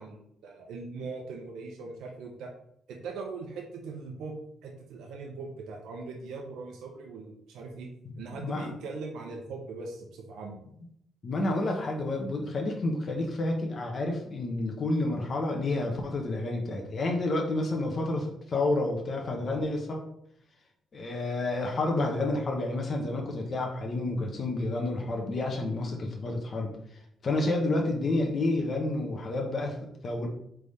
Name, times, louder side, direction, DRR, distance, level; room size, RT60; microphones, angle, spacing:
voice 1, 0.0-2.5 2.9-4.4 4.6-7.9 8.2-10.6, right 4 dB, 85° right, 0 dB, 0.7 m, -40 dB
voice 2, 8.4-8.7 11.2-20.1 20.9-30.3, left 2 dB, 45° left, 1 dB, 0.8 m, -30 dB
4.0 x 3.4 x 3.5 m, 0.72 s
cardioid pair, 90°, 0 cm